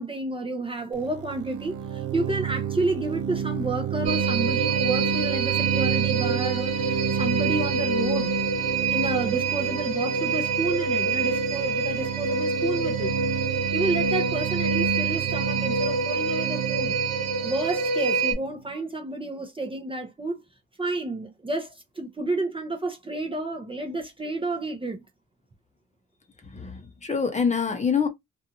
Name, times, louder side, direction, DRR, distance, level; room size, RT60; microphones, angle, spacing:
voice 1, 0.0-8.3 8.9-13.1 13.7-17.0 17.4-20.4 20.8-25.0, right 2 dB, 20° right, 0.7 m, -30 dB
sound 1, 0.9-18.5, right 7 dB, 80° right, 0.5 m, -30 dB
sound 2, 4.0-18.3, right 5 dB, 60° right, 1.3 m, -27 dB
voice 2, 26.5-28.1, left 6 dB, 25° left, 0.8 m, -25 dB
2.6 x 2.4 x 2.8 m
cardioid pair, 90°, 30 cm